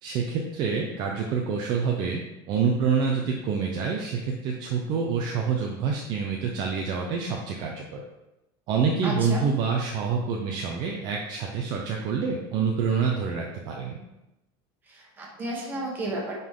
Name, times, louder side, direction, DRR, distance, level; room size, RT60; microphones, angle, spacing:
voice 1, 0.0-2.2 2.5-8.0 8.7-14.0, right 5 dB, 35° right, 0 dB, 0.7 m, -27 dB
voice 2, 9.0-9.4 14.9-16.4, right 2 dB, 15° right, -2 dB, 1.5 m, -32 dB
9.5 x 4.0 x 3.7 m, 0.98 s
supercardioid pair, 175°, 13 cm